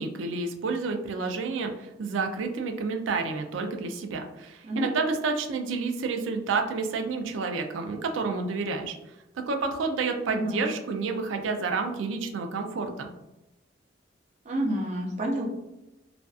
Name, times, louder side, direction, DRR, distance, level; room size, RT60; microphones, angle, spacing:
voice 1, 0.0-9.0 9.5-13.1, right 4 dB, 90° right, 4 dB, 0.4 m, -30 dB
voice 2, 10.3-10.7 14.4-15.4, right 1 dB, 35° right, -2 dB, 0.5 m, -28 dB
2.5 x 2.3 x 2.3 m, 0.95 s
head